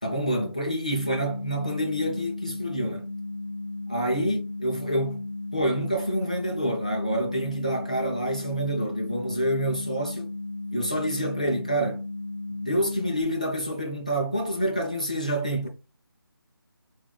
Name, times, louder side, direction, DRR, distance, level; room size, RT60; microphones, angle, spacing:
voice 1, 0.0-3.1 3.9-5.3 5.5-10.3 10.7-12.0 12.5-15.7, right 1 dB, 20° left, 0.4 m, -27 dB
sound 1, 0.9-13.2, left 2 dB, 90° left, 0.7 m, -35 dB
4.1 x 2.3 x 3.9 m
figure-of-eight pair, 180°, 13 cm